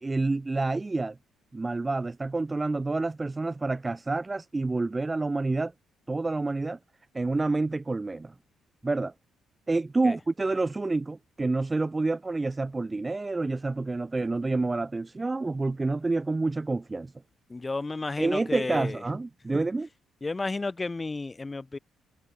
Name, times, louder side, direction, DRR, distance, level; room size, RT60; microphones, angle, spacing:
voice 1, 0.0-1.2 1.5-5.7 6.1-6.8 7.1-8.3 8.8-9.1 9.7-17.1 18.2-19.9, right 3 dB, 20° right, 0.8 m, -28 dB
voice 2, 17.5-19.0 19.5-19.6 20.2-21.8, left 3 dB, 25° left, 1.2 m, -32 dB
cardioid pair, 90°, 0 cm